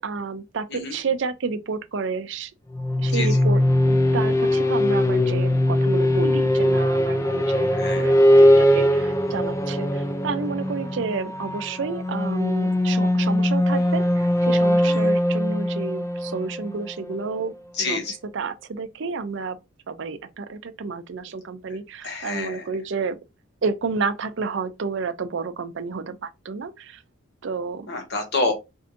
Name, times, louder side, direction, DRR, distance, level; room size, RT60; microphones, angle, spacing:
voice 1, 0.0-2.5 3.0-17.5 17.8-18.0 18.3-19.6 19.9-23.2 23.6-27.0 27.4-27.9, right 4 dB, 65° right, 0.5 m, -30 dB
sound 1, 2.7-17.4, left 1 dB, 15° left, 0.3 m, -21 dB
voice 2, 3.0-3.4 7.7-8.2 14.8-15.1 17.7-18.2 21.7-21.8 22.0-22.7 27.9-28.5, left 3 dB, 55° left, 1.1 m, -28 dB
4.7 x 2.6 x 2.6 m
head